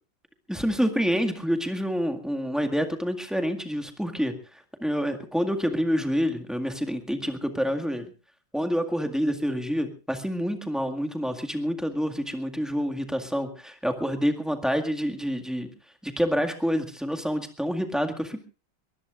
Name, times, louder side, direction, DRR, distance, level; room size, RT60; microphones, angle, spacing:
voice 1, 0.5-4.3 4.8-8.1 8.5-15.7 16.0-18.4, equal, ahead, 5 dB, 1.6 m, -27 dB
22.5 x 20.0 x 2.5 m, 0.33 s
omnidirectional pair, 2.2 m